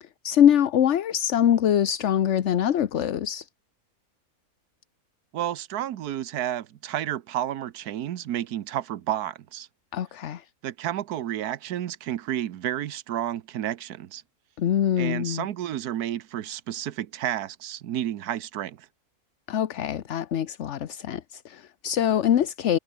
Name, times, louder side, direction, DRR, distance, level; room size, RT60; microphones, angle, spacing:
voice 1, 0.0-3.5 9.9-10.4 14.6-15.5 19.5-22.8, left 10 dB, 55° left, 1.1 m, -23 dB
voice 2, 5.3-9.7 10.6-14.2 15.0-18.9, right 11 dB, 90° right, 1.4 m, -31 dB
omnidirectional pair, 1.6 m